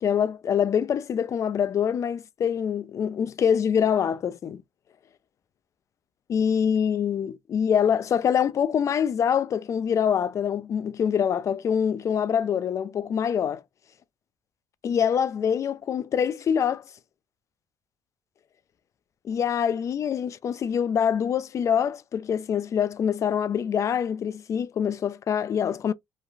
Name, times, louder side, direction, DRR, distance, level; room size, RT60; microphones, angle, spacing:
voice 1, 0.0-4.6 6.3-13.6 14.8-16.8 19.2-25.9, left 8 dB, 45° left, 0.4 m, -25 dB
3.2 x 2.3 x 2.4 m
cardioid pair, 100°, 8 cm